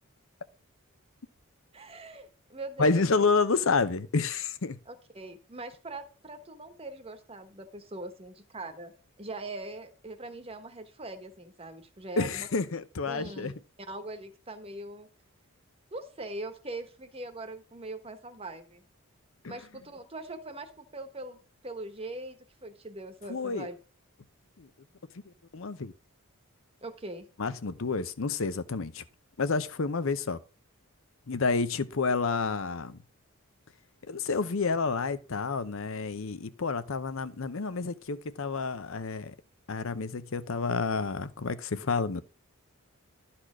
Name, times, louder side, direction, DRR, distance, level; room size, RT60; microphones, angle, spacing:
voice 1, 1.7-2.9 4.9-8.9 9.2-12.5 13.1-13.5 13.9-15.1 15.9-18.8 19.5-23.8 26.8-27.3, right 2 dB, 25° right, 1.1 m, -41 dB
voice 2, 2.8-4.8 12.2-13.5 19.4-19.5 23.3-23.7 24.6-24.7 25.5-25.9 27.4-29.0 29.4-30.4 31.3-33.0 34.0-39.3 39.7-42.2, left 4 dB, 60° left, 0.7 m, -29 dB
11.5 x 4.3 x 6.1 m
head